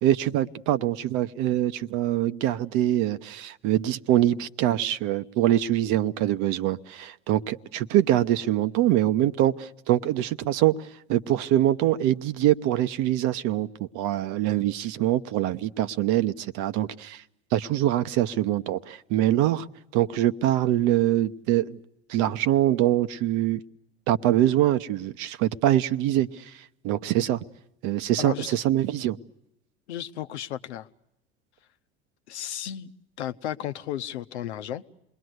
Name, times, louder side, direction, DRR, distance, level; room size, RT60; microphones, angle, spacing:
voice 1, 0.0-13.7 13.9-17.2 17.5-19.7 19.9-21.8 22.1-23.6 24.1-26.5 26.8-27.4 27.8-29.2, right 13 dB, 65° right, 1.0 m, -24 dB
voice 2, 28.2-28.5 29.9-30.9 32.3-34.9, left 11 dB, 85° left, 0.9 m, -34 dB
28.0 x 21.0 x 8.0 m
hypercardioid pair, 80°, 33 cm